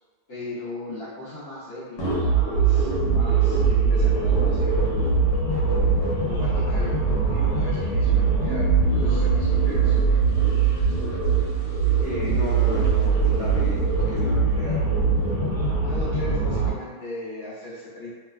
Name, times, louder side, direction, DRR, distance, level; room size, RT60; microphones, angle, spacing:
voice 1, 0.3-5.2 6.2-10.0 12.8-13.0 15.8-18.1, left 1 dB, 55° left, -10 dB, 0.9 m, -37 dB
sound 1, 2.0-16.7, right 5 dB, 70° left, 1.3 m, -22 dB
sound 2, 8.5-13.6, left 7 dB, 80° right, 1.3 m, -39 dB
voice 2, 12.0-14.8, right 1 dB, 65° right, -12 dB, 0.4 m, -33 dB
3.0 x 2.1 x 2.3 m, 1.5 s
omnidirectional pair, 1.7 m